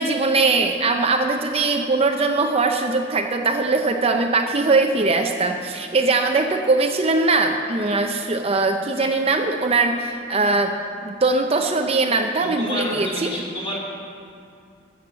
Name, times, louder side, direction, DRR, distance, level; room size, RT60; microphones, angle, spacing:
voice 1, 0.0-10.7 11.0-13.3, right 3 dB, 30° right, 4 dB, 0.6 m, -21 dB
voice 2, 12.6-13.8, left 1 dB, 30° left, -4 dB, 2.6 m, -29 dB
13.5 x 7.7 x 6.8 m, 2.4 s
head